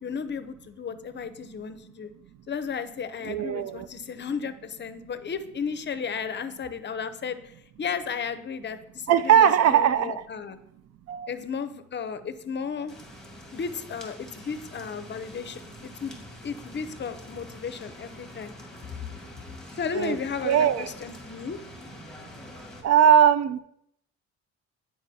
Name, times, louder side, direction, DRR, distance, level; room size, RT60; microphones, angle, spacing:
voice 1, 0.0-2.1 2.5-10.6 11.3-12.9 13.5-18.5 19.8-21.6, left 6 dB, 35° left, 11 dB, 0.6 m, -34 dB
voice 2, 3.3-3.9 9.1-10.2 11.1-11.3 19.9-20.2 20.4-20.9 22.8-23.6, right 9 dB, 55° right, 14 dB, 0.4 m, -20 dB
sound 1, 12.9-22.8, left 1 dB, ahead, 1.4 m, -45 dB
9.8 x 4.8 x 2.7 m, 0.74 s
cardioid pair, 90°, 30 cm